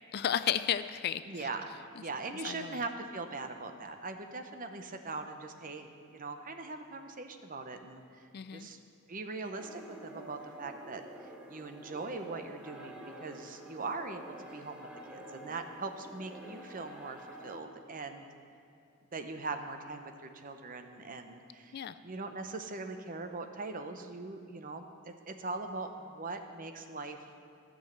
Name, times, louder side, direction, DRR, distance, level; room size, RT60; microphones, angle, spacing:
voice 1, 0.1-1.5 2.4-2.8 8.3-8.7 21.7-22.0, left 9 dB, 50° left, 13 dB, 0.3 m, -33 dB
voice 2, 1.3-1.7 2.0-8.8 9.1-11.0 11.5-18.3 19.1-27.3, right 3 dB, 40° right, 7 dB, 0.8 m, -41 dB
sound 1, 9.6-17.6, right 1 dB, 5° right, 1.0 m, -49 dB
13.5 x 6.4 x 8.0 m, 2.5 s
head